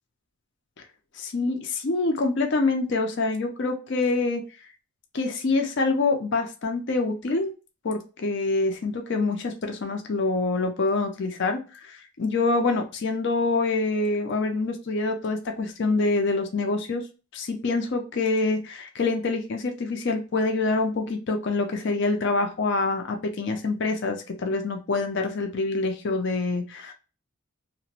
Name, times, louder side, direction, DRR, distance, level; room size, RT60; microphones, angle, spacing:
voice 1, 1.2-4.4 5.1-7.5 7.8-17.0 17.3-26.9, left 3 dB, 50° left, 4 dB, 0.5 m, -26 dB
2.9 x 2.1 x 2.8 m, 0.33 s
head